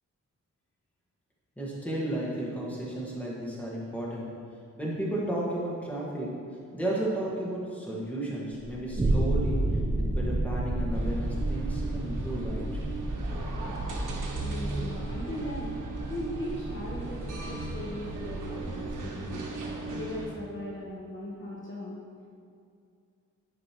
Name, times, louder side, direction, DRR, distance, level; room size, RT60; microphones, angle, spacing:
voice 1, 1.6-4.3 4.8-6.3 6.7-9.6 10.0-12.6, right 1 dB, 5° left, -5 dB, 1.6 m, -33 dB
sound 1, 8.5-19.0, right 1 dB, 20° right, 0.6 m, -32 dB
sound 2, 10.9-20.3, right 3 dB, 80° right, 1.2 m, -37 dB
voice 2, 14.4-15.8 16.1-19.4 19.9-22.0, left 1 dB, 40° left, -4 dB, 1.0 m, -38 dB
10.5 x 5.2 x 3.0 m, 2.4 s
wide cardioid pair, 125°, 31 cm